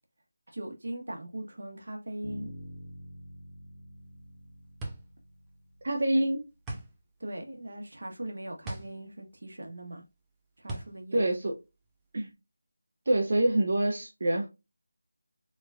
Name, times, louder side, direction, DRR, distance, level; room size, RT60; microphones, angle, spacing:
voice 1, 0.5-2.5 7.2-10.0 10.6-11.2, right 1 dB, 65° right, 1.0 m, -39 dB
Bass guitar, 2.2-6.2, equal, 25° left, 1.1 m, -47 dB
sound 1, 4.0-12.3, right 2 dB, 5° right, 0.4 m, -43 dB
voice 2, 5.8-6.4 11.1-11.5 12.1-12.3 13.1-14.5, right 1 dB, 45° right, 0.7 m, -26 dB
3.8 x 3.1 x 2.3 m
figure-of-eight pair, 175°, 0 cm